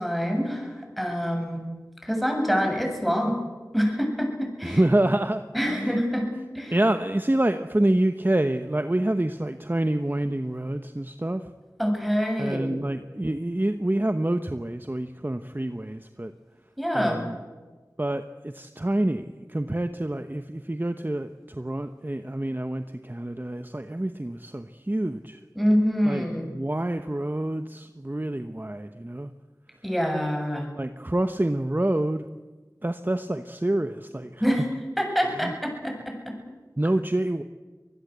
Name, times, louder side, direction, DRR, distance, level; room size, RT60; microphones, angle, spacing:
voice 1, 0.0-1.7 2.0-3.4 3.7-4.8 5.5-6.3 6.5-6.7 11.8-12.7 16.8-17.2 25.6-26.5 29.8-30.7 34.4-34.6 35.0-36.4, equal, ahead, 2 dB, 7.5 m, -26 dB
voice 2, 4.6-6.0 6.7-11.5 12.4-16.3 16.9-17.3 18.0-25.4 26.1-29.3 30.8-32.3 32.8-34.6 35.2-35.5 36.8-37.4, right 1 dB, 30° right, 8 dB, 1.0 m, -27 dB
24.0 x 20.5 x 8.2 m, 1.3 s
wide cardioid pair, 40°, 7 cm